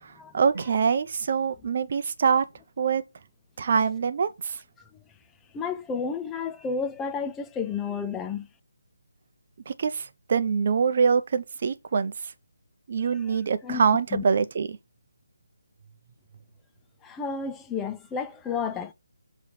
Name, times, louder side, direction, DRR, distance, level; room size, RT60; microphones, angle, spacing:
voice 1, 0.0-2.5 2.8-3.0 3.6-4.6 9.7-12.3 12.9-14.8, right 6 dB, 35° right, 0.6 m, -24 dB
voice 2, 5.5-8.5 13.1-13.4 13.6-13.8 14.1-14.2 17.0-18.9, left 5 dB, 5° left, 0.3 m, -31 dB
6.8 x 3.1 x 5.7 m
hypercardioid pair, 175°, 0 cm